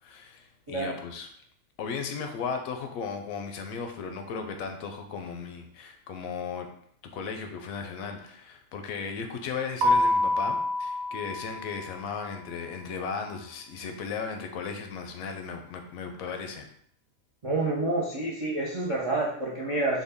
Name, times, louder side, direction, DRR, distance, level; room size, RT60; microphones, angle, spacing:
voice 1, 0.0-1.3 1.8-6.7 7.1-16.7, left 5 dB, 75° left, 5 dB, 1.0 m, -36 dB
Keyboard (musical), 9.8-12.4, left 1 dB, 75° right, 1.0 m, -27 dB
voice 2, 17.4-20.0, right 2 dB, 45° right, -4 dB, 0.4 m, -28 dB
3.6 x 2.2 x 3.5 m, 0.65 s
omnidirectional pair, 1.5 m